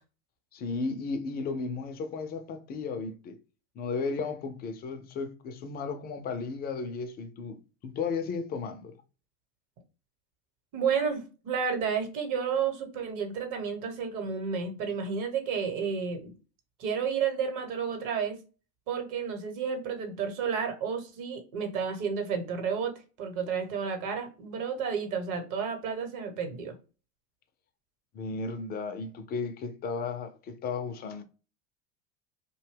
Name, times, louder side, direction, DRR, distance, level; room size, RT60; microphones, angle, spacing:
voice 1, 0.5-3.4 3.8-9.0 28.1-31.2, left 4 dB, 25° left, 0.4 m, -34 dB
voice 2, 10.7-16.3 16.8-18.4 18.9-22.9 23.2-26.8, right 6 dB, 50° right, 1.0 m, -31 dB
2.7 x 2.2 x 3.3 m
hypercardioid pair, 105°, 41 cm